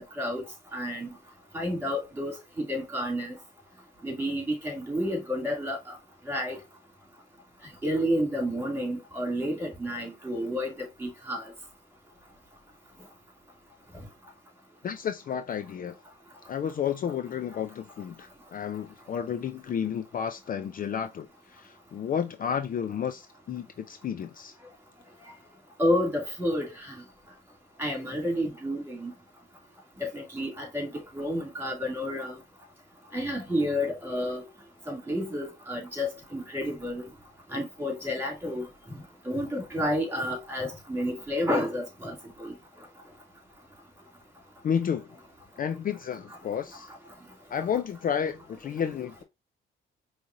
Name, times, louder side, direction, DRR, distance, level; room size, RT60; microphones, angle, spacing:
voice 1, 0.7-1.1 1.5-2.3 2.7-3.3 4.0-5.8 6.3-6.6 7.8-11.4 25.8-26.9 27.8-29.1 30.0-30.9 31.1-32.3 33.1-34.4 34.9-37.0 37.5-38.6 39.2-42.5, equal, 10° right, 2.4 m, -30 dB
voice 2, 14.8-15.9 16.5-24.5 44.6-45.1 45.6-46.9 47.5-49.2, left 8 dB, 45° left, 0.5 m, -31 dB
5.2 x 3.2 x 2.6 m
cardioid pair, 90°, 20 cm